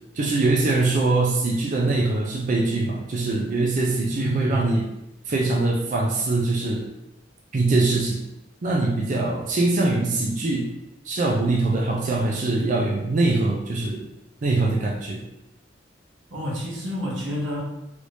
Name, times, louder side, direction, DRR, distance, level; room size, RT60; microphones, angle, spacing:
voice 1, 0.1-4.9 5.3-6.9 7.5-8.2 8.6-10.7 11.0-14.0 14.4-15.2, right 2 dB, 45° right, -1 dB, 0.4 m, -23 dB
voice 2, 4.1-4.7 16.3-17.6, equal, 80° right, -5 dB, 1.2 m, -29 dB
3.1 x 2.6 x 3.2 m, 0.89 s
head